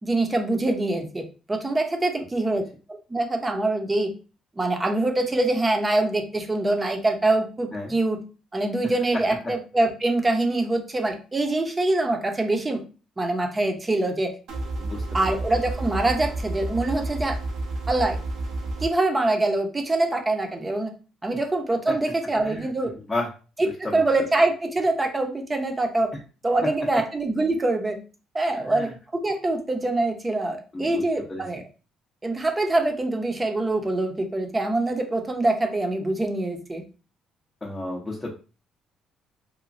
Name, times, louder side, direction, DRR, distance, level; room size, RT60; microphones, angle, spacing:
voice 1, 0.0-2.6 3.1-4.1 4.6-8.2 8.5-12.8 13.2-14.3 15.1-17.4 17.9-18.2 18.8-20.9 21.2-22.9 23.6-26.1 26.4-28.0 28.3-31.6 32.2-36.8, right 2 dB, 20° right, 3 dB, 0.7 m, -24 dB
sound 1, 14.5-18.9, right 2 dB, 75° right, 0.7 m, -30 dB
voice 2, 14.8-15.3 21.9-22.0 22.4-22.7 23.1-23.3 23.8-24.0 28.6-28.9 30.7-31.0 31.3-31.4 37.6-38.3, left 2 dB, 20° left, -2 dB, 0.7 m, -32 dB
3.0 x 2.2 x 2.5 m, 0.35 s
supercardioid pair, 75°, 0 cm